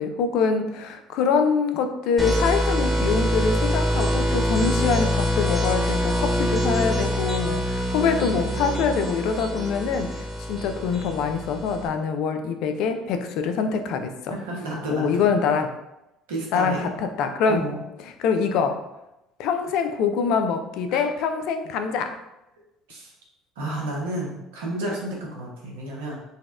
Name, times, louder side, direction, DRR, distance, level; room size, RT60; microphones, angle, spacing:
voice 1, 0.0-14.3 14.9-15.7 16.5-17.6 18.0-18.8 19.4-22.2, left 5 dB, 70° left, 7 dB, 0.3 m, -24 dB
sound 1, 2.2-11.9, equal, 10° right, 0.8 m, -25 dB
voice 2, 14.3-15.3 16.3-16.8 17.5-17.9 20.9-21.1 22.9-23.1 23.6-26.2, right 1 dB, 85° right, -3 dB, 0.8 m, -31 dB
4.0 x 2.1 x 2.4 m, 0.91 s
hypercardioid pair, 70°, 0 cm